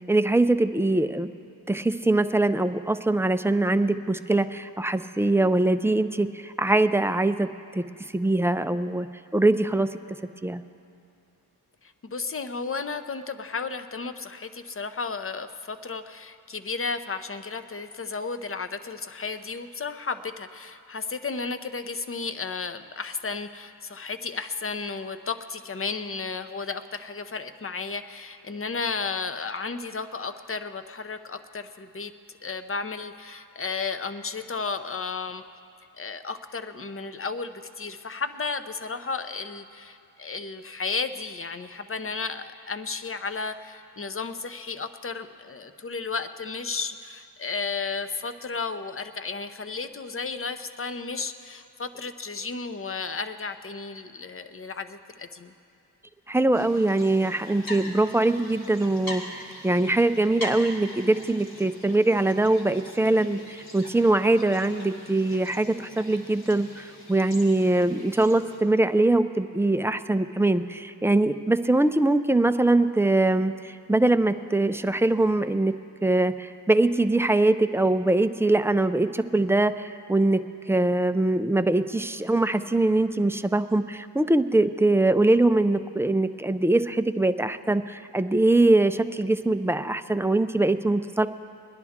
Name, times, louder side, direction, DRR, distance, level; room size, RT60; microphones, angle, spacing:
voice 1, 0.1-1.3 1.7-7.8 8.1-9.1 9.3-9.9 10.4-10.6 56.3-75.7 76.0-91.3, right 2 dB, 5° right, 10 dB, 0.4 m, -22 dB
voice 2, 11.8-32.1 32.4-35.4 36.0-55.5, left 4 dB, 35° left, 10 dB, 0.7 m, -33 dB
sound 1, 56.5-68.6, left 1 dB, 60° left, 2.4 m, -43 dB
20.5 x 10.5 x 3.6 m, 2.5 s
cardioid pair, 55°, 41 cm